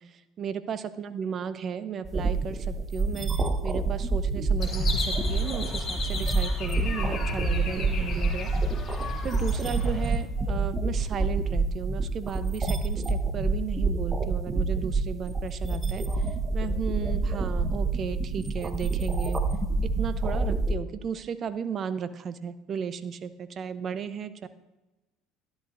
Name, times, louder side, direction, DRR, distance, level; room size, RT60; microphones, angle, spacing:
voice 1, 0.0-3.3 3.6-8.5 9.2-16.3 16.5-19.4 19.8-24.5, right 7 dB, 45° right, 13 dB, 0.7 m, -35 dB
sound 1, 2.0-20.7, right 3 dB, 25° right, 1.1 m, -27 dB
sound 2, 4.6-10.1, left 3 dB, 45° left, 2.7 m, -34 dB
12.5 x 11.5 x 2.6 m, 1.1 s
hypercardioid pair, 70°, 0 cm